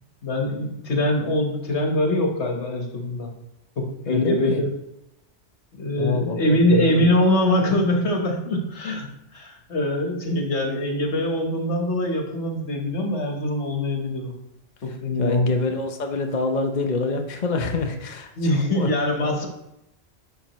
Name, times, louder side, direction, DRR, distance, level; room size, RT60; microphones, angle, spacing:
voice 1, 0.2-3.3 3.8-4.7 5.8-9.1 9.3-14.3 14.8-15.6 18.4-19.5, left 1 dB, 70° left, 2 dB, 1.6 m, -23 dB
voice 2, 4.1-4.6 6.0-7.1 14.9-18.9, left 3 dB, 45° left, 4 dB, 0.8 m, -26 dB
11.0 x 5.7 x 3.1 m, 0.85 s
omnidirectional pair, 1.2 m